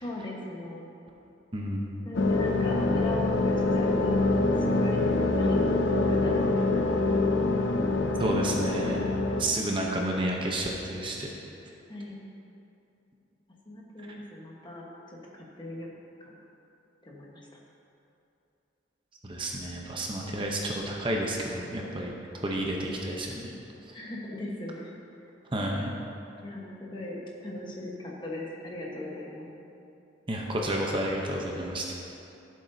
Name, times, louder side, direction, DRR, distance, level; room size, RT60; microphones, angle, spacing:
voice 1, 0.0-0.9 2.0-4.2 4.6-5.1 5.4-7.5 11.9-12.2 13.6-15.9 16.2-16.3 17.0-17.4 23.9-24.9 26.4-29.5, left 1 dB, 25° left, -3 dB, 1.2 m, -38 dB
voice 2, 1.5-2.0 8.2-9.0 9.4-11.3 19.2-22.1 22.4-23.5 25.5-25.9 30.3-32.0, right 1 dB, 25° right, -1 dB, 0.8 m, -30 dB
sound 1, 2.1-9.4, left 2 dB, 75° left, 0.6 m, -25 dB
13.5 x 7.5 x 2.7 m, 2.7 s
head